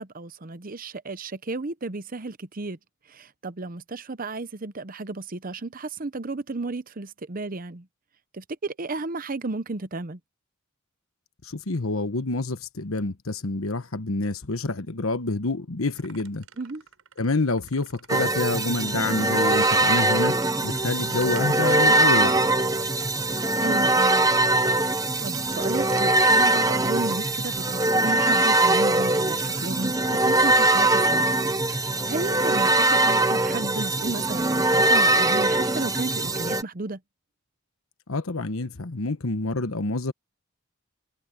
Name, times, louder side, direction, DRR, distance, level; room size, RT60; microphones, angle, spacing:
voice 1, 0.0-2.8 3.1-7.9 8.3-10.2 16.6-16.8 23.6-24.3 25.2-31.2 31.7-37.0, right 3 dB, 40° right, 0.8 m, -33 dB
voice 2, 11.4-16.4 17.2-20.4 20.6-22.4 38.1-40.1, left 2 dB, 80° left, 1.2 m, -27 dB
sound 1, 16.0-23.7 25.0-26.1 27.1-30.2, right 3 dB, 80° right, 5.8 m, -44 dB
sound 2, 18.1-36.6, right 2 dB, 15° right, 1.0 m, -22 dB
head